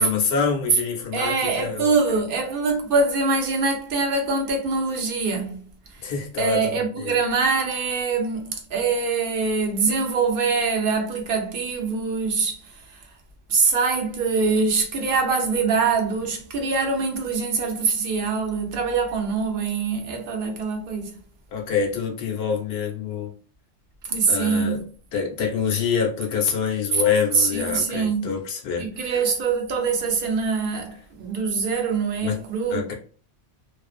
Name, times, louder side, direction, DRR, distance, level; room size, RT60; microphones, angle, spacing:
voice 1, 0.0-1.9 6.0-7.2 21.5-23.3 24.3-24.8 25.1-29.1 32.2-32.4 32.7-32.9, left 6 dB, 65° left, 0.8 m, -26 dB
voice 2, 1.1-6.1 6.4-13.0 13.5-21.1 24.1-24.8 26.9-27.0 27.3-28.3 28.8-32.9, right 4 dB, 55° right, 0.8 m, -24 dB
2.5 x 2.4 x 2.4 m
omnidirectional pair, 1.2 m